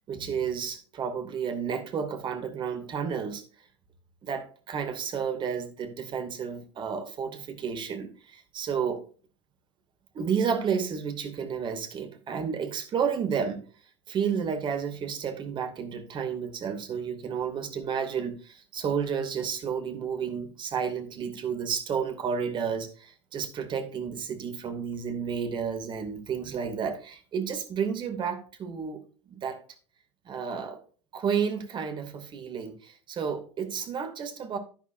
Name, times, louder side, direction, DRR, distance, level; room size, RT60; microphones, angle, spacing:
voice 1, 0.1-3.4 4.2-9.0 10.1-13.6 14.1-29.0 29.3-29.6 30.3-30.8 31.1-34.6, right 7 dB, 30° right, 6 dB, 2.4 m, -31 dB
11.0 x 11.0 x 2.6 m, 0.39 s
figure-of-eight pair, 80°, 15 cm